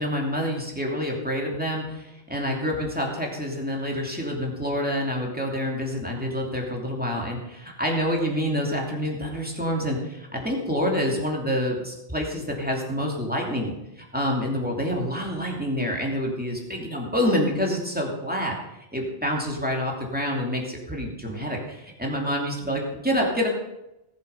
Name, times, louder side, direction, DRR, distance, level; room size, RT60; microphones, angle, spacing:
voice 1, 0.0-18.5 18.9-23.5, equal, 10° right, -1 dB, 2.7 m, -27 dB
18.5 x 7.5 x 5.7 m, 0.92 s
omnidirectional pair, 1.1 m